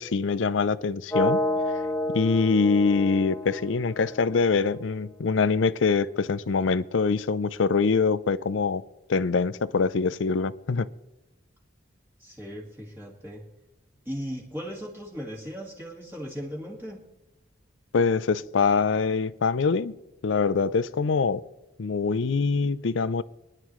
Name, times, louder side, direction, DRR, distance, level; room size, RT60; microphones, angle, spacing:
voice 1, 0.0-1.4 2.1-8.8 9.1-10.9 17.9-19.9 20.2-21.4 21.8-23.2, left 4 dB, 75° left, 0.5 m, -24 dB
sound 1, 1.1-5.1, left 1 dB, 15° left, 0.9 m, -30 dB
voice 2, 12.2-13.4 14.1-17.0, equal, 10° right, 1.9 m, -37 dB
23.0 x 10.5 x 3.1 m
head